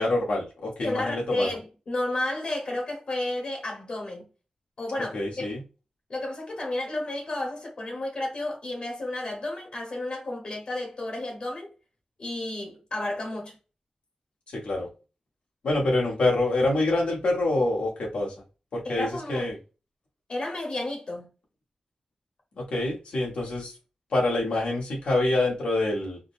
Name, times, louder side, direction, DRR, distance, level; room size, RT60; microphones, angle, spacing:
voice 1, 0.0-1.6 5.1-5.6 14.5-14.9 15.6-18.3 18.7-19.6 22.6-23.8 24.1-26.2, left 2 dB, 90° left, 1.2 m, -26 dB
voice 2, 0.8-4.2 4.8-5.5 6.1-11.7 12.2-13.6 18.9-19.5 20.3-21.3, left 1 dB, 55° left, 1.1 m, -32 dB
3.8 x 2.1 x 2.5 m
wide cardioid pair, 140°, 2 cm